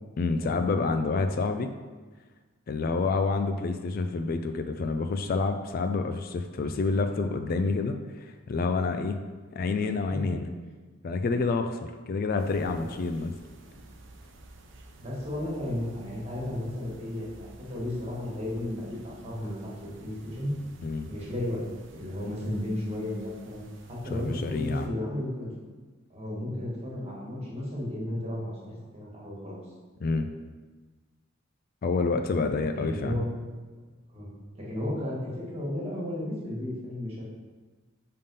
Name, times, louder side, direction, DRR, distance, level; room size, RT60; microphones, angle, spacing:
voice 1, 0.2-1.7 2.7-9.2 9.5-10.5 11.0-11.8 12.1-13.3 20.8-21.1 24.1-24.9 30.0-30.3 31.8-33.2, left 3 dB, 45° left, 7 dB, 0.3 m, -28 dB
sound 1, 12.4-24.9, right 2 dB, 60° right, 0.7 m, -52 dB
voice 2, 15.0-20.6 21.1-21.6 21.9-23.6 23.9-25.5 26.1-29.6 32.6-33.3 34.1-37.2, left 1 dB, 30° right, -5 dB, 1.6 m, -34 dB
5.6 x 3.7 x 5.2 m, 1.3 s
head